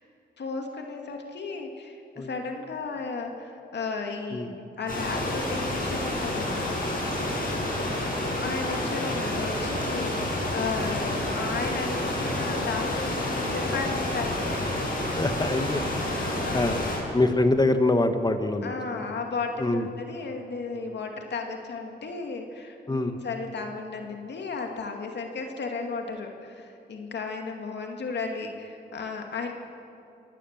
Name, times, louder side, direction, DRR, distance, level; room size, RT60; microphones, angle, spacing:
voice 1, 0.4-7.2 8.4-14.6 16.4-16.9 18.6-29.5, left 4 dB, 75° left, 3 dB, 2.2 m, -34 dB
sound 1, 4.9-17.0, left 1 dB, 55° left, 7.9 m, -29 dB
voice 2, 15.2-16.8 17.1-18.8 19.6-19.9 22.9-23.1, left 2 dB, 25° left, 7 dB, 1.7 m, -25 dB
24.5 x 18.5 x 7.4 m, 2.7 s
cardioid pair, 75°, 18 cm